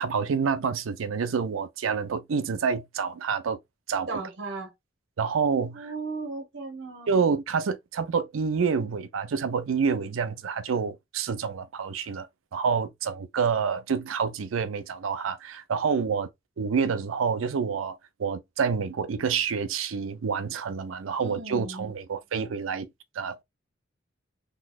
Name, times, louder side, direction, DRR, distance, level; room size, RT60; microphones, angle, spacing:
voice 1, 0.0-3.6 3.9-4.1 5.2-5.9 7.1-12.3 12.5-16.3 16.6-22.9 23.1-23.4, right 6 dB, 85° right, 0.5 m, -28 dB
voice 2, 4.1-4.7 5.7-7.1 21.2-21.9, right 3 dB, 65° right, 1.0 m, -36 dB
4.0 x 2.9 x 2.2 m
head